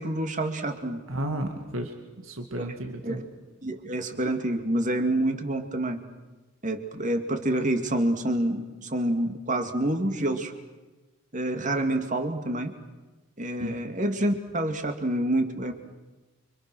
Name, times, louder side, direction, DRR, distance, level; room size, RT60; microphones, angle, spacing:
voice 1, 0.0-1.0 3.0-3.3 3.6-6.0 6.6-10.5 11.3-12.7 13.4-15.7, right 1 dB, 40° right, 6 dB, 2.4 m, -27 dB
voice 2, 1.1-3.2 13.6-13.7, right 1 dB, 90° right, 4 dB, 2.3 m, -33 dB
29.5 x 25.5 x 6.3 m, 1.1 s
head